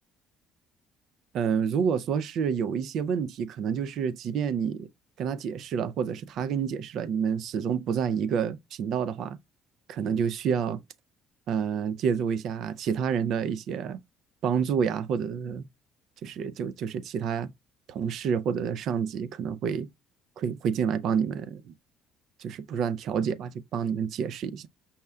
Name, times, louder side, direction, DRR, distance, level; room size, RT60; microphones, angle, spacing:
voice 1, 1.3-4.9 5.2-9.4 9.9-10.8 11.5-14.0 14.4-15.6 16.2-17.5 17.9-19.9 20.4-21.7 22.4-24.7, right 7 dB, 55° right, 0.4 m, -28 dB
5.5 x 2.2 x 3.4 m
cardioid pair, 155°, 0 cm